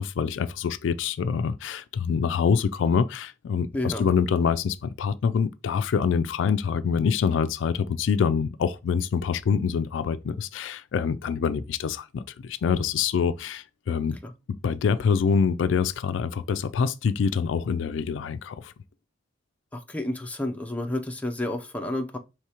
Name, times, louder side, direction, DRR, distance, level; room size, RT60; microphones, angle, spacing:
voice 1, 0.0-14.2 14.6-18.7, left 6 dB, 70° left, 0.3 m, -25 dB
voice 2, 3.7-4.1 14.2-14.3 19.7-22.2, left 1 dB, 10° left, 0.5 m, -30 dB
4.8 x 3.2 x 2.9 m
head